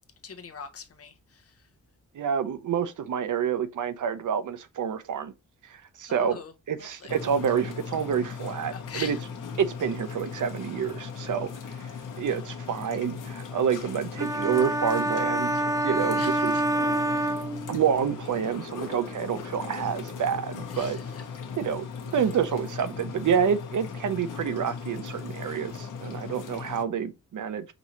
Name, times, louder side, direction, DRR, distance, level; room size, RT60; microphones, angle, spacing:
voice 1, 0.2-1.7 6.1-7.1 8.7-9.2 16.1-16.6 17.1-17.5 20.7-21.2, left 6 dB, 50° left, 0.9 m, -43 dB
voice 2, 2.1-5.3 5.7-6.4 6.7-9.2 9.6-11.8 12.2-16.5 17.7-21.0 21.6-27.7, right 7 dB, 75° right, 0.7 m, -28 dB
sound 1, 7.1-26.8, left 5 dB, 80° left, 1.0 m, -38 dB
sound 2, 14.2-18.1, right 1 dB, 10° right, 0.3 m, -27 dB
5.3 x 2.7 x 3.0 m
wide cardioid pair, 155°, 31 cm